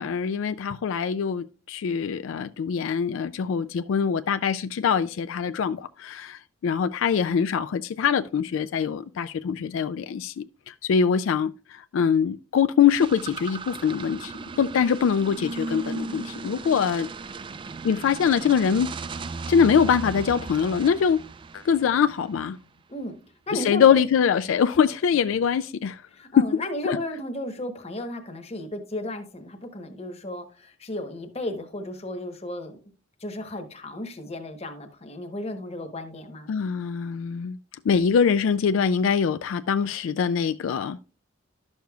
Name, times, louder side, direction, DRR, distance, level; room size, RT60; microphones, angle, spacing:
voice 1, 0.0-14.3 14.6-17.1 17.8-18.9 19.5-21.2 21.5-22.6 23.5-26.0 26.4-26.5 26.9-27.0 36.5-37.6 37.9-41.0, left 7 dB, 85° left, 0.3 m, -23 dB
sound 1, 12.9-22.4, right 4 dB, 25° right, 0.3 m, -36 dB
voice 2, 23.5-24.0 26.1-32.8 33.2-36.5, left 1 dB, 30° left, 1.0 m, -34 dB
11.5 x 6.5 x 2.3 m
head